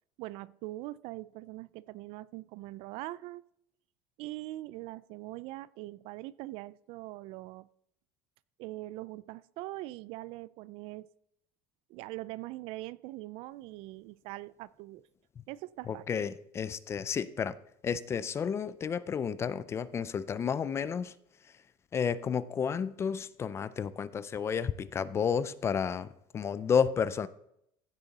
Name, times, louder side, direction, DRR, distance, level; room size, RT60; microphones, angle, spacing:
voice 1, 0.2-3.4 4.2-7.7 8.6-11.1 11.9-15.1 15.5-16.0, right 18 dB, 60° right, 0.4 m, -42 dB
voice 2, 15.9-17.5 17.8-21.1 21.9-27.3, left 7 dB, 25° left, 0.4 m, -31 dB
15.5 x 6.7 x 4.1 m
cardioid pair, 145°, 11 cm